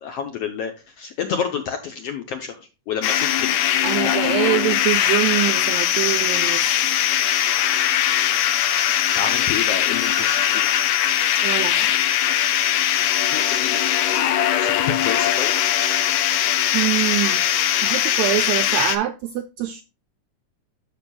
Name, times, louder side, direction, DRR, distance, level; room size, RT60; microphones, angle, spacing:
voice 1, 0.0-3.6 4.0-4.6 9.1-10.7 13.3-13.8 14.6-15.5, left 7 dB, 75° left, 1.4 m, -29 dB
sound 1, 3.0-19.0, left 11 dB, 90° left, 2.5 m, -20 dB
voice 2, 3.8-7.0 11.4-11.9 16.7-17.4 17.8-19.8, right 14 dB, 85° right, 1.6 m, -24 dB
13.5 x 5.1 x 2.2 m
omnidirectional pair, 3.7 m